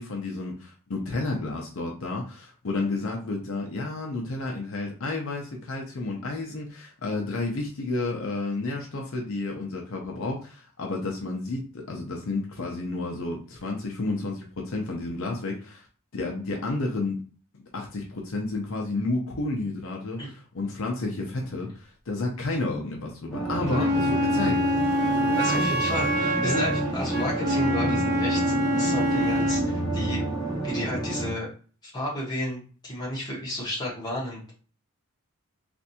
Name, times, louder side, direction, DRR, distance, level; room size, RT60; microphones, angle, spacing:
voice 1, 0.0-15.9 16.1-17.2 17.7-24.6 25.1-25.7, left 2 dB, 65° left, 0 dB, 0.6 m, -31 dB
sound 1, 23.3-31.3, right 2 dB, ahead, 1.0 m, -29 dB
voice 2, 23.5-23.9 25.4-30.3 30.6-31.5 31.8-34.6, left 1 dB, 20° left, -5 dB, 1.2 m, -32 dB
Wind instrument woodwind instrument, 23.7-29.7, equal, 55° right, 0.6 m, -26 dB
3.4 x 2.6 x 2.7 m, 0.39 s
head